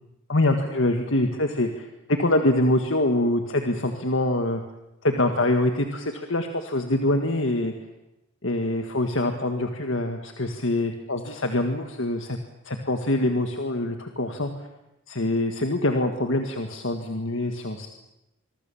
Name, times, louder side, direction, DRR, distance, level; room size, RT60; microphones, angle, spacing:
voice 1, 0.3-4.6 5.0-7.7 8.4-12.4 12.6-14.5 15.1-17.9, left 1 dB, 60° left, 5 dB, 1.8 m, -24 dB
25.5 x 23.5 x 7.2 m, 0.93 s
head